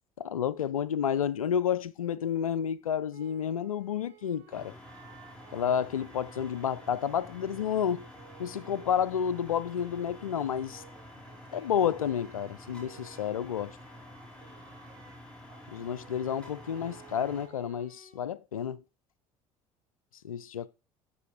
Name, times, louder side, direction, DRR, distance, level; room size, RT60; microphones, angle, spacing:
voice 1, 0.2-4.7 5.5-8.1 8.4-10.8 11.5-13.8 15.7-18.8 20.2-20.7, left 8 dB, 90° left, 0.4 m, -30 dB
sound 1, 3.1-12.3 12.7-18.2, right 10 dB, 70° right, 2.1 m, -57 dB
sound 2, 4.5-17.5, left 1 dB, 5° left, 4.5 m, -49 dB
13.0 x 5.4 x 4.7 m
hypercardioid pair, 60°, 17 cm